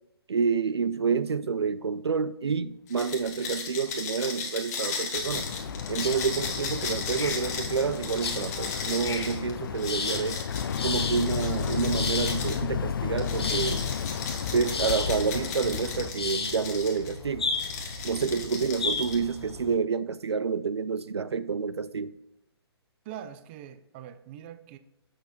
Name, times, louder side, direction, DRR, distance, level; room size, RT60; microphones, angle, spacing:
voice 1, 0.3-5.5 5.9-10.4 10.8-13.9 14.5-17.5 18.0-22.1, right 5 dB, 80° right, 0.5 m, -28 dB
sound 1, 2.9-12.6 13.2-17.1 17.5-19.4, left 5 dB, 35° left, 1.5 m, -36 dB
sound 2, 5.2-19.8, left 4 dB, 70° left, 1.0 m, -36 dB
Boat Water vehicle, 5.3-16.1, left 7 dB, 55° left, 0.4 m, -33 dB
voice 2, 12.1-12.5 23.0-24.8, right 10 dB, 25° right, 0.4 m, -43 dB
7.4 x 6.7 x 3.1 m
figure-of-eight pair, 135°, 14 cm